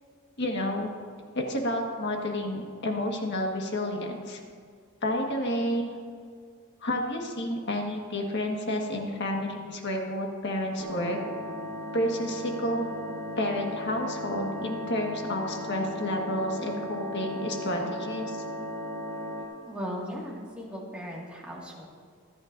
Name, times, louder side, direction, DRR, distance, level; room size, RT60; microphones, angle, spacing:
voice 1, 0.4-0.9 1.3-4.4 5.0-5.9 6.8-11.2 11.9-12.9 13.4-18.4, left 1 dB, 50° left, 1 dB, 1.6 m, -30 dB
sound 1, 10.8-19.4, equal, 90° right, 1.4 m, -36 dB
voice 2, 19.7-21.8, equal, 5° right, -4 dB, 2.0 m, -37 dB
25.5 x 8.7 x 2.7 m, 2.1 s
head